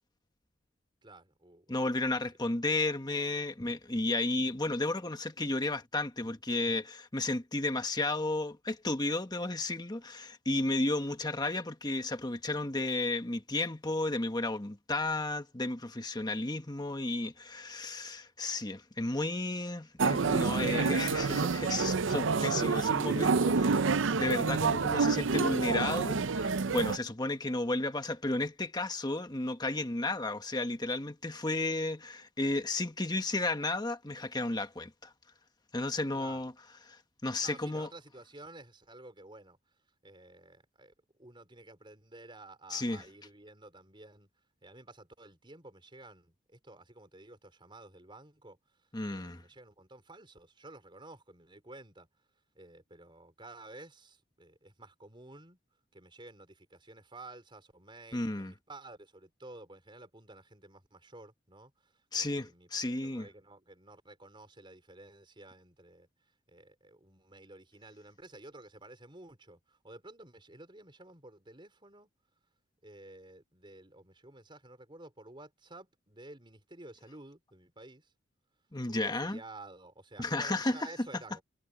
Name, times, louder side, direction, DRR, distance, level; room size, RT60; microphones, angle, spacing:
voice 1, 1.0-1.7 36.1-36.5 37.4-39.6 40.0-40.9 41.2-44.3 44.6-48.6 49.1-52.1 52.5-55.6 55.9-61.9 62.2-66.1 66.5-72.1 72.8-78.1 78.9-81.4, right 2 dB, 25° right, 4.9 m, -52 dB
voice 2, 1.7-23.8 24.2-35.1 35.7-36.5 36.9-37.9 42.7-43.0 48.9-49.4 58.1-58.5 62.1-63.3 78.7-79.4 80.2-80.9, left 2 dB, 20° left, 1.4 m, -33 dB
sound 1, 20.0-27.0, right 4 dB, 70° right, 0.6 m, -28 dB
head